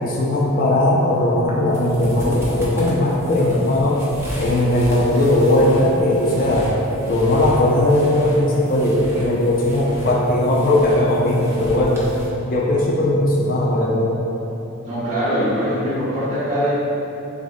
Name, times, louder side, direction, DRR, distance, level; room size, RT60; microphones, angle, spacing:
voice 1, 0.0-4.0 4.4-6.7 7.1-12.0 12.5-14.1, left 1 dB, 40° left, -4 dB, 0.4 m, -18 dB
sound 1, 1.4-12.3, equal, 10° right, 0.5 m, -34 dB
voice 2, 14.8-16.7, equal, 30° right, -13 dB, 1.4 m, -22 dB
6.2 x 2.3 x 2.5 m, 3.0 s
head